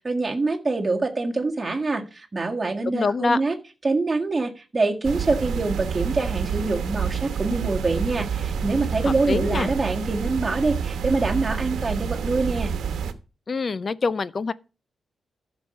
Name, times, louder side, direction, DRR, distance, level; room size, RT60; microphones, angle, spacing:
voice 1, 0.0-3.5 3.8-12.7, right 3 dB, 20° right, 1.8 m, -25 dB
voice 2, 2.9-3.4 9.0-9.7 13.5-14.5, left 4 dB, 35° left, 0.6 m, -25 dB
sound 1, 5.0-13.1, right 7 dB, 85° right, 1.2 m, -28 dB
13.0 x 6.2 x 5.4 m
wide cardioid pair, 160°, 0 cm